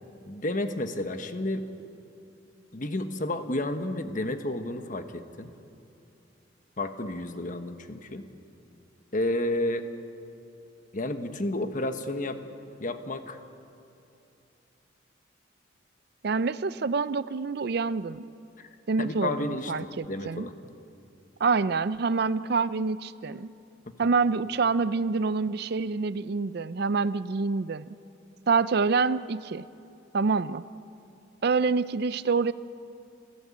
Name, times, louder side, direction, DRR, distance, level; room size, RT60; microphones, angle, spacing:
voice 1, 0.2-1.6 2.7-5.5 6.8-8.3 9.1-9.9 10.9-12.4 12.8-13.4 18.6-18.7 19.0-20.5, left 1 dB, 40° left, 8 dB, 1.2 m, -31 dB
voice 2, 16.2-18.3 18.9-20.5 21.4-23.5 24.0-27.9 28.5-29.6 30.1-30.6 31.4-32.5, right 4 dB, 55° right, 16 dB, 0.5 m, -26 dB
28.5 x 15.5 x 8.5 m, 2.7 s
head